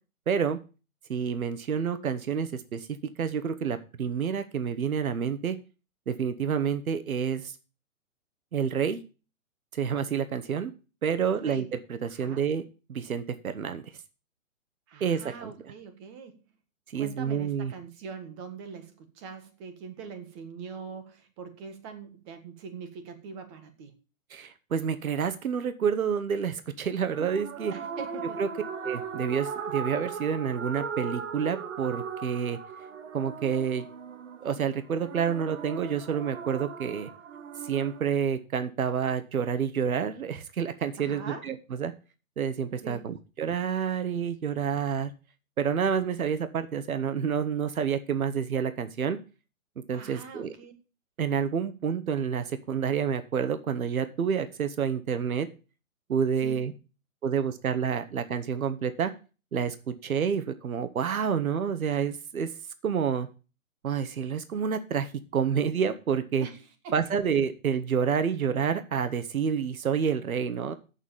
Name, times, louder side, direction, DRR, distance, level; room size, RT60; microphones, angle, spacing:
voice 1, 0.3-0.6 1.1-2.9 3.2-5.5 6.1-7.5 8.5-9.0 9.7-10.7 11.0-12.6 12.9-13.8 15.0-15.5 16.9-17.7 24.3-27.7 28.4-28.5 28.8-32.6 33.1-33.9 34.4-37.1 37.7-41.9 42.4-45.1 45.6-49.2 49.9-50.5 51.2-55.5 56.1-56.7 57.2-59.1 59.5-62.5 62.8-63.3 63.8-66.5 66.9-70.7, right 7 dB, 80° right, 10 dB, 1.5 m, -28 dB
voice 2, 11.2-11.7 12.0-12.4 14.9-16.4 17.0-23.9 27.7-28.4 41.0-41.5 42.8-43.1 49.9-50.7 56.4-56.6 66.4-67.2, right 5 dB, 20° right, 8 dB, 1.3 m, -43 dB
sound 1, 27.1-38.0, right 6 dB, 60° right, 1.7 m, -38 dB
8.3 x 7.3 x 7.1 m, 0.32 s
hypercardioid pair, 160°, 42 cm